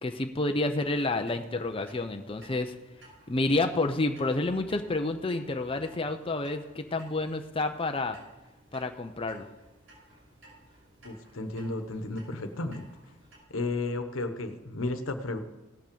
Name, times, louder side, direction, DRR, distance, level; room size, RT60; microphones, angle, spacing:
voice 1, 0.0-2.7 3.3-8.2 8.7-9.4, left 2 dB, 25° left, 6 dB, 0.6 m, -29 dB
Clock, 0.8-13.4, right 1 dB, 75° right, 5.7 m, -56 dB
voice 2, 11.0-12.8 13.5-15.4, left 2 dB, 90° left, 7 dB, 1.2 m, -33 dB
17.5 x 5.9 x 6.9 m, 1.0 s
head